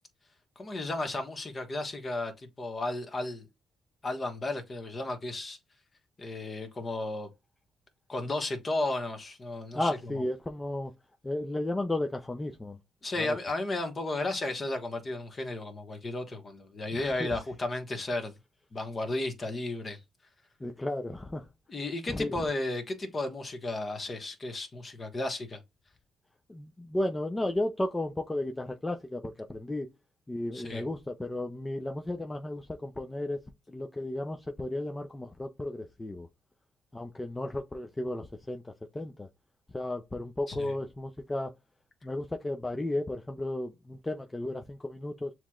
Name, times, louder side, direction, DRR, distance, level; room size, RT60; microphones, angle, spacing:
voice 1, 0.6-3.5 4.0-5.6 6.2-7.3 8.1-10.2 13.0-18.3 18.7-20.0 21.7-25.6 30.5-30.8 40.5-40.7, left 2 dB, 35° left, 1.3 m, -34 dB
voice 2, 9.7-10.9 11.2-12.8 13.2-13.4 16.9-17.4 20.6-21.5 22.1-22.4 26.5-29.9 30.3-33.4 33.7-36.3 36.9-39.3 39.7-41.5 42.0-45.3, left 1 dB, 15° left, 0.6 m, -34 dB
7.0 x 3.1 x 2.4 m
cardioid pair, 90°, 0 cm